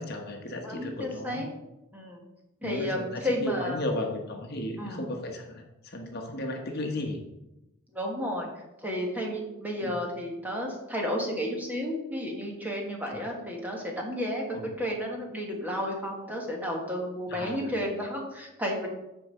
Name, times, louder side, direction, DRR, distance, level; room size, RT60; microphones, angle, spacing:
voice 1, 0.0-1.4 2.6-7.2 9.8-9.9 13.1-13.2 14.5-14.7 17.3-17.6, left 1 dB, 50° left, 2 dB, 1.1 m, -34 dB
voice 2, 0.5-1.5 1.9-2.2 2.6-3.8 4.8-5.1 7.9-8.5 8.8-18.9, equal, 10° right, -1 dB, 1.5 m, -32 dB
6.9 x 4.7 x 6.9 m, 0.95 s
head